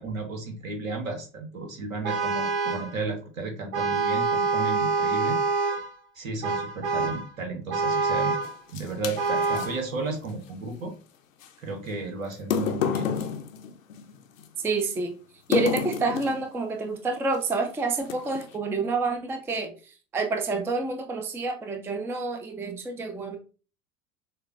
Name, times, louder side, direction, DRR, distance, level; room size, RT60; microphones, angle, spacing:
voice 1, 0.0-5.4 6.1-8.4 8.7-10.9 11.6-13.1, right 3 dB, 80° right, 4 dB, 1.1 m, -33 dB
Vehicle horn car horn honking, 2.0-2.9 3.7-5.9 6.4-7.3 7.7-8.6 9.2-9.8, right 4 dB, 55° right, 0.9 m, -26 dB
sound 1, 8.4-9.7 11.4-11.5 12.3-14.5 15.5-16.5 17.3-17.5 18.0-18.5, left 7 dB, 80° left, 0.6 m, -29 dB
voice 2, 14.6-15.1 15.5-23.4, right 3 dB, 5° right, 4 dB, 0.4 m, -28 dB
6.4 x 2.2 x 2.4 m, 0.37 s
figure-of-eight pair, 75°, 40 cm